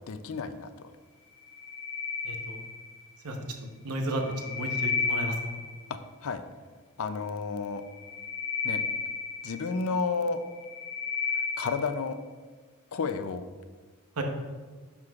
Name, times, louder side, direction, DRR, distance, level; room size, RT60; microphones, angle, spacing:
voice 1, 0.1-0.9 5.9-6.4 7.0-7.8 8.6-8.8 9.4-10.4 11.6-12.2 12.9-13.4, left 4 dB, 65° left, 10 dB, 0.5 m, -31 dB
sound 1, 1.4-3.1 4.0-5.8 7.8-9.9 10.4-11.9, left 4 dB, 25° left, 1.4 m, -33 dB
voice 2, 2.2-2.6 3.2-3.4 3.8-5.3 14.2-14.3, right 1 dB, 90° right, 3 dB, 0.9 m, -32 dB
9.6 x 6.1 x 2.4 m, 1.4 s
head